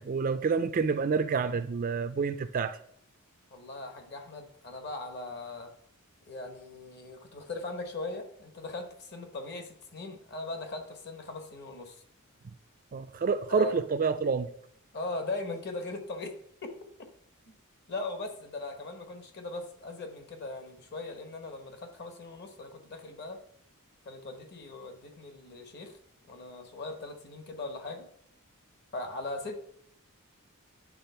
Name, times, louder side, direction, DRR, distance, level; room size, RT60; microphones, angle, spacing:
voice 1, 0.0-2.8 12.9-14.5, right 5 dB, 40° right, 0.4 m, -28 dB
voice 2, 3.5-5.7 6.3-12.0 13.2-13.7 14.9-16.3 17.5-17.6 17.9-23.4 24.0-25.9 26.3-28.1 28.9-29.6, left 2 dB, 50° left, 1.2 m, -39 dB
9.7 x 3.6 x 5.7 m
head